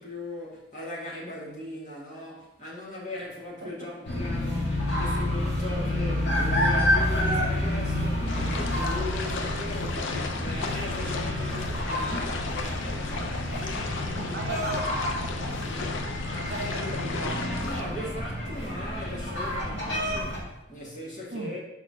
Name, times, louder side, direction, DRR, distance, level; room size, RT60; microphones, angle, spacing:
voice 1, 0.0-14.7 17.6-21.6, left 1 dB, 40° left, 1.7 m, -39 dB
sound 1, 4.0-20.4, left 1 dB, 60° left, 1.8 m, -29 dB
sound 2, 8.3-17.8, left 3 dB, 80° left, 0.6 m, -34 dB
voice 2, 14.1-16.0 16.4-17.5 21.3-21.5, right 1 dB, 60° right, 0.9 m, -37 dB
4.5 x 4.1 x 5.6 m
head